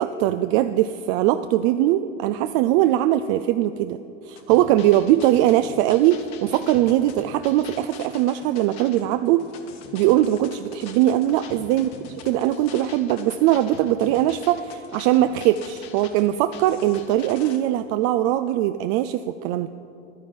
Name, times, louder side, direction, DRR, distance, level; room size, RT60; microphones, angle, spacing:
voice 1, 0.0-4.0 4.3-9.4 9.9-11.9 12.3-19.7, right 13 dB, 55° right, 10 dB, 0.5 m, -21 dB
sound 1, 4.3-17.6, left 6 dB, 65° left, 1.2 m, -44 dB
11.5 x 9.6 x 5.3 m, 2.7 s
hypercardioid pair, 80°, 38 cm